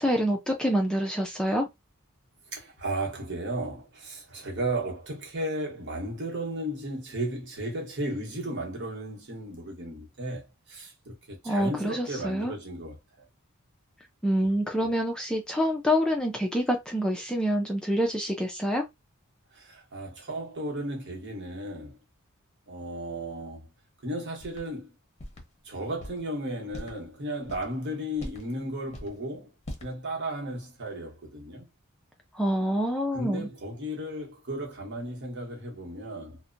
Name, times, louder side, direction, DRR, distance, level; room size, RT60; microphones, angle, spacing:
voice 1, 0.0-1.6 11.5-12.5 14.2-18.8 32.4-33.4, equal, 5° left, 0.4 m, -26 dB
voice 2, 2.5-13.3 14.4-14.5 14.8-14.9 19.5-22.0 22.7-23.7 24.0-24.9 25.6-29.5 29.8-31.7 33.1-36.4, right 1 dB, 55° right, 1.0 m, -35 dB
sound 1, 24.4-24.7 25.2-25.4 26.0-26.2 26.7-27.0 27.4-27.7 28.2-28.5 28.9-29.2 29.6-29.9, left 1 dB, 30° left, 0.7 m, -40 dB
2.7 x 2.1 x 2.5 m
head